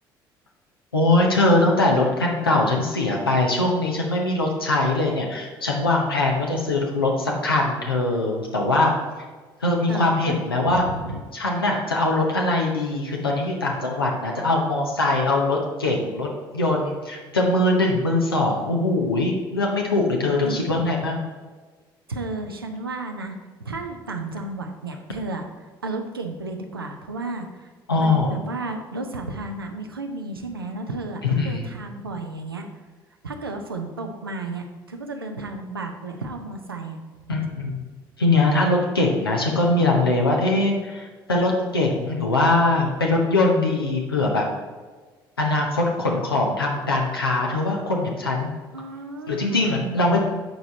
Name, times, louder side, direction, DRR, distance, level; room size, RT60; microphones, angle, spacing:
voice 1, 0.9-8.9 9.6-10.8 11.3-21.3 27.9-28.4 31.2-31.7 37.3-37.8 38.2-44.5 45.4-48.5 49.3-50.2, left 2 dB, 85° left, -1 dB, 0.8 m, -22 dB
voice 2, 9.9-10.3 10.7-11.2 20.4-20.8 22.1-23.4 23.6-32.7 33.2-37.0 37.4-37.7 48.7-50.2, right 2 dB, 85° right, 4 dB, 0.6 m, -33 dB
7.9 x 4.9 x 4.1 m, 1.4 s
figure-of-eight pair, 50°, 12 cm